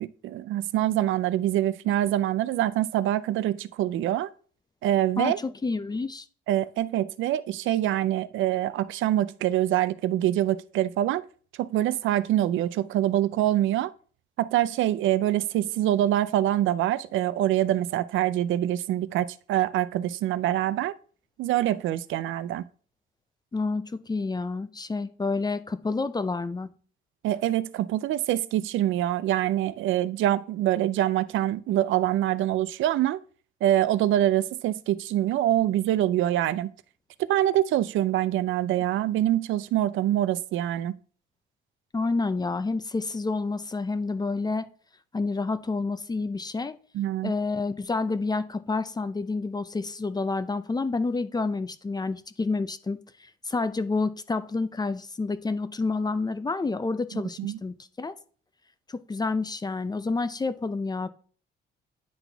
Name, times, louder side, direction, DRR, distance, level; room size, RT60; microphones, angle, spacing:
voice 1, 0.0-4.3 4.8-5.4 6.5-11.2 11.6-13.9 14.4-20.9 21.4-22.6 27.2-33.2 33.6-36.7 37.3-40.9 46.9-47.3 57.1-57.6, right 13 dB, 80° right, 0.4 m, -25 dB
voice 2, 5.2-6.2 23.5-26.7 41.9-44.7 45.1-46.8 47.2-58.1 58.9-61.1, left 3 dB, 20° left, 0.5 m, -29 dB
9.8 x 4.1 x 3.4 m
cardioid pair, 90°, 20 cm